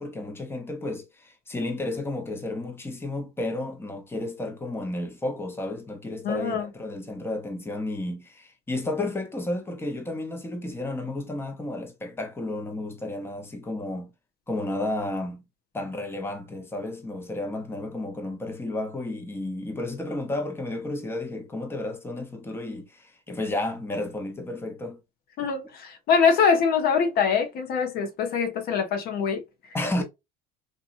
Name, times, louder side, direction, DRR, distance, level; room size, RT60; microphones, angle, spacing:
voice 1, 0.0-14.1 14.5-15.4 15.7-25.0 29.7-30.0, left 2 dB, 10° left, 0.9 m, -32 dB
voice 2, 6.2-6.7 25.4-29.4, left 6 dB, 55° left, 0.8 m, -23 dB
2.8 x 2.4 x 2.4 m
supercardioid pair, 85°, 18 cm